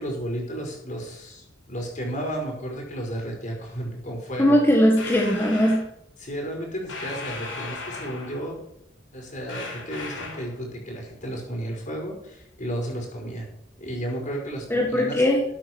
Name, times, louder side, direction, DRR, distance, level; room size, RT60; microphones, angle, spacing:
voice 1, 0.0-4.6 6.2-8.6 9.1-13.5 13.8-15.2, right 1 dB, 45° left, 0 dB, 5.4 m, -33 dB
voice 2, 4.4-5.8 14.7-15.4, equal, 10° left, -1 dB, 1.5 m, -19 dB
sound 1, 5.0-5.9 6.9-8.5 9.5-10.5, left 3 dB, 75° left, 5.2 m, -36 dB
13.0 x 8.8 x 4.6 m, 0.76 s
head